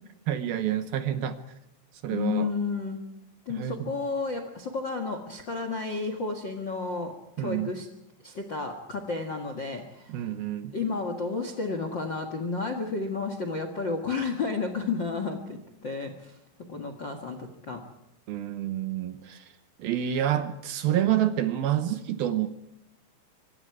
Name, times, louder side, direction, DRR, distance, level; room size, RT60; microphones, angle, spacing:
voice 1, 0.3-1.4 2.0-2.5 3.6-3.9 7.4-7.8 10.1-10.8 18.3-19.5 19.8-22.5, right 11 dB, 70° right, 10 dB, 2.5 m, -28 dB
voice 2, 2.1-3.0 3.4-7.9 8.2-10.1 10.7-16.4 16.7-17.8, left 4 dB, 50° left, 6 dB, 1.3 m, -32 dB
25.5 x 25.0 x 4.9 m, 0.82 s
omnidirectional pair, 5.0 m